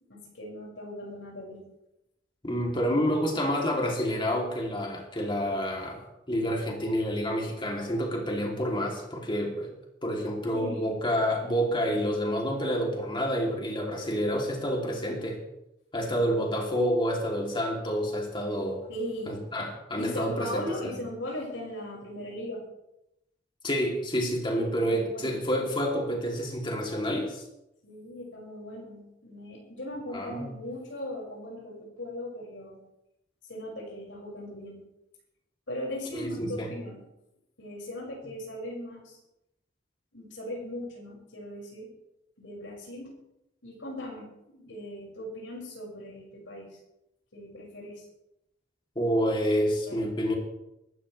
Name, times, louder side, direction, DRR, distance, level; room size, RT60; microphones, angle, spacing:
voice 1, 0.1-1.6 10.5-11.0 18.9-19.4 19.9-22.6 24.5-25.4 27.8-32.8 33.5-34.8 35.7-37.0 37.6-39.2 40.1-41.9 42.4-43.1 43.6-46.8 47.3-48.1 49.5-50.1, left 1 dB, 85° left, -2 dB, 5.5 m, -39 dB
voice 2, 2.4-9.7 10.0-15.4 15.9-18.8 19.3-20.6 23.6-27.4 30.1-30.5 36.1-36.7 48.9-50.3, equal, 25° left, 0 dB, 2.9 m, -28 dB
24.0 x 12.5 x 3.3 m, 0.87 s
head